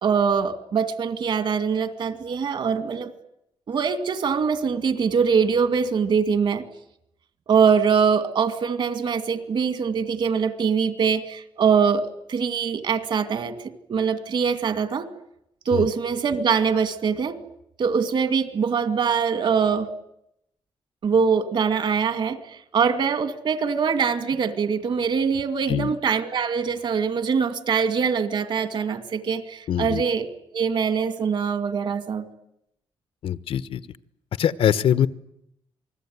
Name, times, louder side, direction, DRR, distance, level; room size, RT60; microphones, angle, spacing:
voice 1, 0.0-3.1 3.7-6.7 7.5-15.1 15.7-17.4 17.8-19.9 21.0-30.3 30.5-32.3, right 6 dB, 60° right, 11 dB, 2.4 m, -23 dB
voice 2, 29.7-30.0 33.2-33.8 34.4-35.1, left 9 dB, 75° left, 15 dB, 1.0 m, -22 dB
28.0 x 20.5 x 9.6 m, 0.80 s
wide cardioid pair, 135°, 9 cm